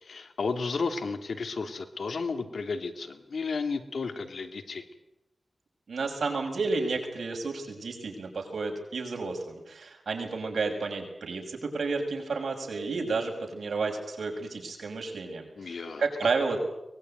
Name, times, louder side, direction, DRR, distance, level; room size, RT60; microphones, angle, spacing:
voice 1, 0.0-4.8 15.6-16.0, left 4 dB, 85° left, 7 dB, 2.7 m, -33 dB
voice 2, 5.9-16.6, right 4 dB, 85° right, 2 dB, 6.6 m, -31 dB
23.5 x 21.0 x 9.2 m, 0.90 s
wide cardioid pair, 80°, 0 cm